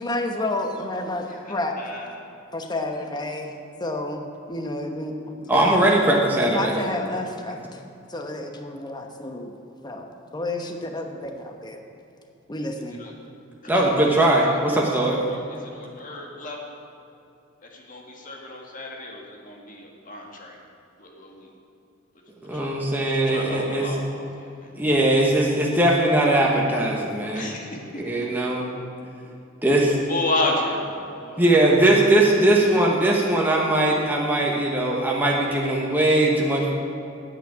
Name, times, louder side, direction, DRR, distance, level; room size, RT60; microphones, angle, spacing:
voice 1, 0.0-1.8 2.5-5.7 6.5-7.8 8.1-9.5 9.8-10.1 10.3-11.8 12.5-13.1, left 2 dB, 20° left, 4 dB, 1.1 m, -30 dB
voice 2, 1.3-2.3 13.0-13.1 13.7-13.8 15.1-15.4 15.7-16.8 17.7-20.6 21.0-21.5 22.5-22.8 23.1-24.7 27.3-28.0 30.1-31.5, left 2 dB, 40° left, 0 dB, 2.0 m, -32 dB
voice 3, 5.5-6.8 13.7-15.2 22.4-23.9 24.7-27.5 27.9-28.6 29.6-30.0 31.4-36.7, right 1 dB, 10° right, -3 dB, 1.2 m, -20 dB
9.9 x 8.9 x 8.7 m, 2.7 s
head